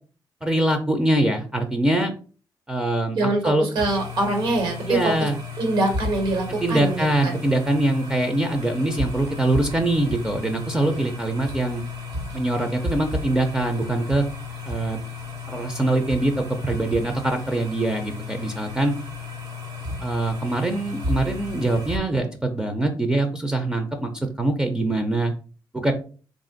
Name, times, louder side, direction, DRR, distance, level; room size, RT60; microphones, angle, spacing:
voice 1, 0.4-2.1 2.7-3.2 3.4-3.7 4.9-5.4 6.6-11.8 12.3-14.2 14.6-15.0 15.5-19.0 20.0-24.1 24.4-25.3 25.7-25.9, right 2 dB, 10° right, 5 dB, 0.4 m, -23 dB
voice 2, 3.1-5.3 5.6-7.4, right 2 dB, 75° right, 3 dB, 1.4 m, -24 dB
sound 1, 3.7-22.0, left 3 dB, 60° right, 1.2 m, -33 dB
3.7 x 2.4 x 3.7 m, 0.39 s
wide cardioid pair, 140°, 8 cm